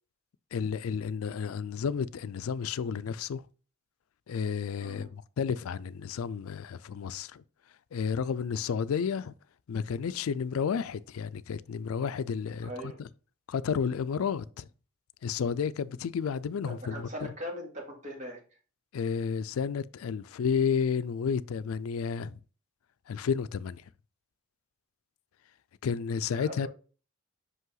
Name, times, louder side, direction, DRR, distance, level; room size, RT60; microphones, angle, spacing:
voice 1, 0.5-3.4 4.3-7.4 7.9-9.3 9.7-12.7 13.5-14.6 15.2-17.3 18.9-22.4 23.1-23.8 25.8-26.7, left 6 dB, 85° left, 0.4 m, -31 dB
voice 2, 12.6-13.0 16.5-18.4 26.2-26.7, equal, 35° right, 2.3 m, -40 dB
5.7 x 5.4 x 3.9 m
head